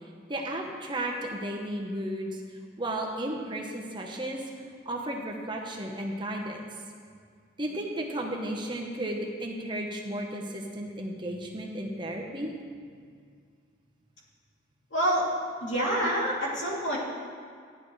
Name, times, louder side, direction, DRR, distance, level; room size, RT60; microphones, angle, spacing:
voice 1, 0.3-2.4 2.8-4.4 4.9-6.6 7.6-12.5, right 1 dB, 25° right, 0 dB, 0.9 m, -34 dB
voice 2, 14.9-15.3 15.6-17.0, right 1 dB, 70° left, -5 dB, 2.8 m, -27 dB
15.0 x 10.5 x 3.2 m, 2.1 s
head